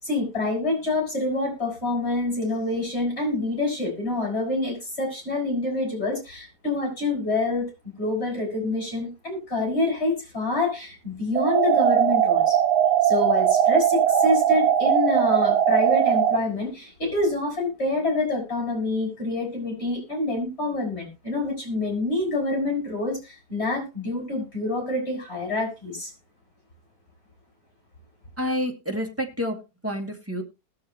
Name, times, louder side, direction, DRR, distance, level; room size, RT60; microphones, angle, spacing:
voice 1, 0.0-12.6 13.0-26.1, left 2 dB, 35° left, 0 dB, 6.7 m, -27 dB
sound 1, 11.4-16.4, right 10 dB, 70° right, 1.3 m, -20 dB
voice 2, 28.4-30.4, equal, 10° right, 1 dB, 2.0 m, -29 dB
20.0 x 6.8 x 2.9 m, 0.24 s
omnidirectional pair, 1.8 m